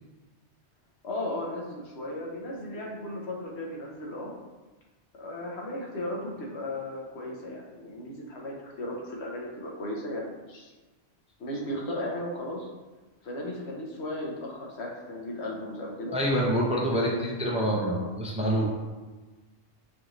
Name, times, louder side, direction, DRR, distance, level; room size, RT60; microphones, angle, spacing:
voice 1, 1.0-4.3 5.2-10.7 11.4-12.7 13.2-16.2 16.9-18.1, left 1 dB, 70° left, -2 dB, 1.1 m, -36 dB
voice 2, 16.1-18.6, equal, 10° right, -3 dB, 0.3 m, -26 dB
4.7 x 2.6 x 3.0 m, 1.2 s
omnidirectional pair, 1.2 m